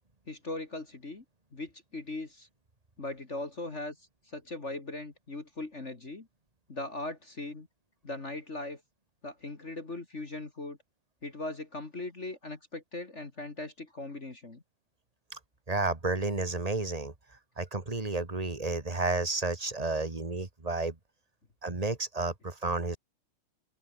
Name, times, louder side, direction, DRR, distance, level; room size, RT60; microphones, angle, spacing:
voice 1, 0.3-1.2 1.5-2.5 3.0-4.0 4.3-6.3 6.7-7.7 8.0-8.8 9.2-10.8 11.2-14.6, left 2 dB, 25° left, 1.8 m, -39 dB
voice 2, 15.7-17.1 17.6-20.9 21.6-23.0, right 3 dB, 20° right, 1.2 m, -31 dB
open air
omnidirectional pair, 3.9 m